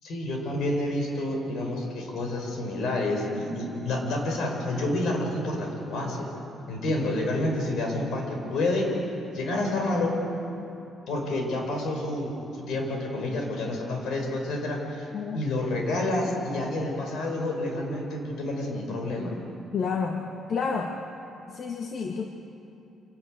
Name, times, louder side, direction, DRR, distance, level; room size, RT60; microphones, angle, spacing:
voice 1, 0.0-6.3 6.6-8.9 9.3-10.1 11.1-15.1 15.3-19.3, left 1 dB, 75° left, 2 dB, 5.6 m, -29 dB
voice 2, 19.7-21.0 21.5-22.3, left 5 dB, 60° left, 3 dB, 1.6 m, -30 dB
27.5 x 13.0 x 9.5 m, 2.8 s
cardioid pair, 90°, 0 cm